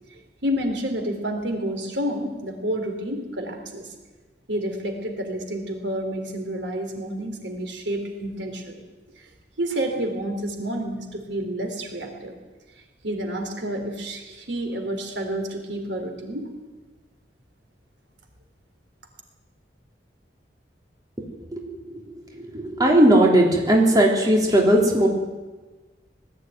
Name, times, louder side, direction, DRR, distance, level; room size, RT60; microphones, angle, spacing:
voice 1, 0.4-3.9 4.5-8.8 9.6-12.3 13.0-16.5, right 1 dB, 80° right, 4 dB, 3.4 m, -29 dB
voice 2, 22.8-25.1, right 1 dB, 20° right, -1 dB, 3.4 m, -17 dB
20.0 x 14.5 x 9.3 m, 1.2 s
head